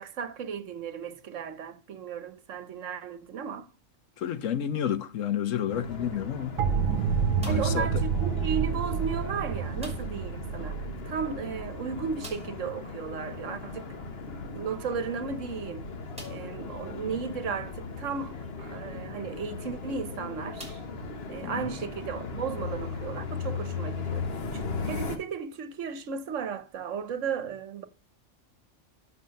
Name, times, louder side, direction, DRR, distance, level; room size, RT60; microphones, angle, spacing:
voice 1, 0.0-3.7 7.4-13.9 14.3-15.9 16.3-20.8 21.3-24.3 24.5-27.9, right 6 dB, 70° right, 1.2 m, -35 dB
voice 2, 4.2-6.6 7.4-7.9 21.4-21.7, left 9 dB, 75° left, 1.2 m, -30 dB
sound 1, 5.7-25.2, left 4 dB, 50° left, 1.3 m, -38 dB
sound 2, 6.6-12.3, right 6 dB, 85° right, 1.1 m, -29 dB
sound 3, 7.4-7.9 9.8-10.3 10.6-10.7 11.0-11.1 12.2-12.7 14.5-14.6 15.2-15.3 16.1-16.6 17.3-17.4 19.5-19.7 20.6-21.4, right 1 dB, 5° right, 3.0 m, -47 dB
7.6 x 6.4 x 5.2 m
omnidirectional pair, 1.4 m